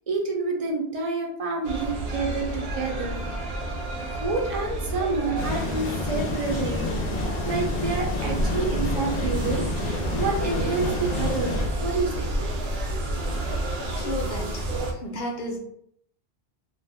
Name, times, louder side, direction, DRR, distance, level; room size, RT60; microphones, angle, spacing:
voice 1, 0.1-3.2 4.2-6.9 7.5-12.5, right 3 dB, 40° right, 0 dB, 0.5 m, -28 dB
sound 1, 1.6-14.9, right 1 dB, 65° right, 0.8 m, -29 dB
sound 2, 5.4-11.7, left 3 dB, 80° left, 0.9 m, -31 dB
voice 2, 13.8-14.6 15.0-15.6, left 1 dB, 50° left, 0 dB, 0.7 m, -32 dB
2.5 x 2.1 x 3.3 m, 0.66 s
omnidirectional pair, 1.2 m